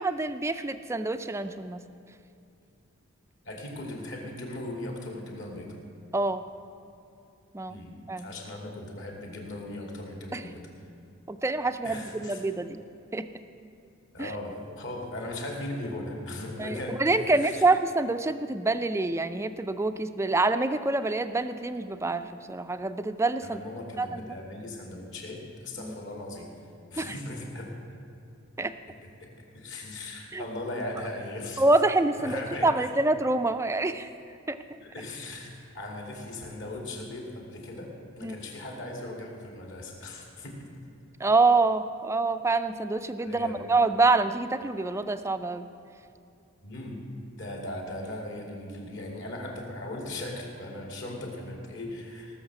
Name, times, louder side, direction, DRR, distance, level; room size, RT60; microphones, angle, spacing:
voice 1, 0.0-1.8 6.1-6.4 7.5-7.8 8.1-8.3 10.3-10.4 11.3-12.8 13.1-13.3 14.2-14.3 16.6-23.6 24.0-24.3 25.8-25.9 27.0-27.1 28.6-28.8 30.3-30.4 31.6-34.1 34.5-34.6 38.2-38.4 41.2-45.6, right 3 dB, 15° right, 10 dB, 0.4 m, -26 dB
voice 2, 3.4-5.7 7.7-10.7 11.8-12.4 14.1-17.0 17.3-17.6 23.4-26.5 26.9-27.7 29.0-31.8 32.2-32.9 34.7-40.7 43.2-43.6 46.6-47.0 47.4-52.4, left 1 dB, 60° left, 0 dB, 2.6 m, -38 dB
18.5 x 6.6 x 7.4 m, 2.6 s
head